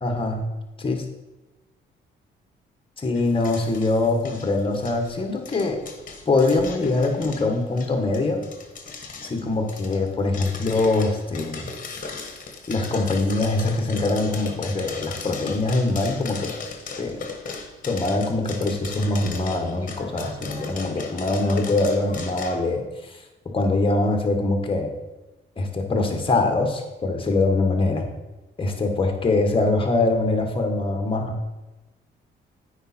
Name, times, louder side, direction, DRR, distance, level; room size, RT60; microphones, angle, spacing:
voice 1, 0.0-0.4 0.8-1.0 3.0-5.8 6.3-8.4 9.2-11.6 12.7-16.5 16.9-17.2 17.8-23.2 23.5-24.9 25.6-28.1 28.6-31.5, left 2 dB, 25° left, 4 dB, 1.5 m, -23 dB
sound 1, 3.1-22.6, left 4 dB, 45° left, 1.4 m, -37 dB
9.2 x 4.9 x 4.4 m, 1.1 s
cardioid pair, 90°, 20 cm